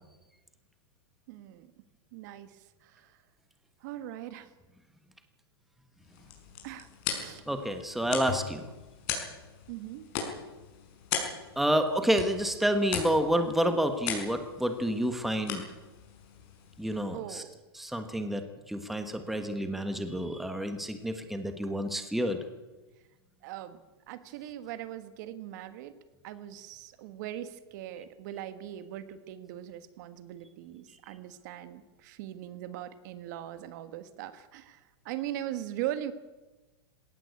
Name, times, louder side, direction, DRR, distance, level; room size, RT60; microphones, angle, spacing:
voice 1, 1.3-1.7 2.1-3.2 3.8-4.5 6.6-6.9 7.2-7.4 9.7-10.1 17.1-17.5 23.4-23.8 24.1-25.9 26.2-36.1, right 12 dB, 45° right, 12 dB, 1.6 m, -40 dB
sound 1, 6.0-17.2, left 7 dB, 40° left, 6.0 m, -39 dB
voice 2, 7.5-8.6 11.6-15.6 16.8-17.4 17.7-18.4 18.7-22.4, equal, ahead, 7 dB, 1.4 m, -29 dB
20.0 x 18.0 x 8.4 m, 1.2 s
supercardioid pair, 155°, 13 cm